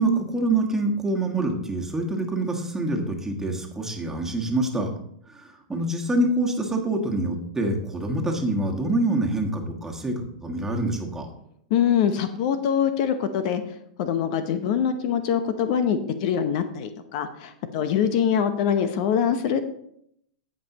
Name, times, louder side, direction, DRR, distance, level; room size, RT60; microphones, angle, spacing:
voice 1, 0.0-4.9 5.3-11.3, right 2 dB, 10° right, 1 dB, 1.6 m, -26 dB
voice 2, 11.7-13.6 14.0-19.7, left 8 dB, 55° left, 9 dB, 0.8 m, -24 dB
16.0 x 5.4 x 3.0 m, 0.71 s
hypercardioid pair, 120°, 4 cm